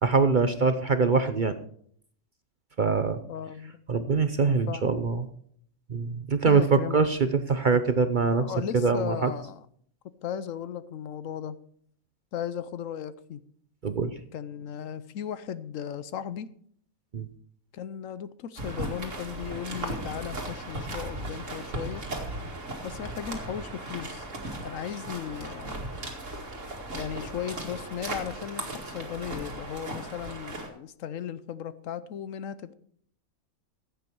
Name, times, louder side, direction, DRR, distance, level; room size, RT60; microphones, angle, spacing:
voice 1, 0.0-1.6 2.8-3.2 3.9-5.3 5.9-8.5 8.7-9.3 13.8-14.1 17.1-17.3, right 4 dB, 45° right, 10 dB, 0.7 m, -24 dB
voice 2, 3.2-3.8 4.4-4.9 6.5-7.0 7.7-7.8 8.4-9.6 10.0-11.6 12.3-13.4 14.3-16.5 17.7-22.0 22.8-24.3 24.6-25.8 26.9-32.7, left 9 dB, 70° left, 15 dB, 1.0 m, -36 dB
sound 1, 18.6-30.7, right 2 dB, 60° right, 2.6 m, -37 dB
15.0 x 8.6 x 4.6 m, 0.62 s
omnidirectional pair, 1.5 m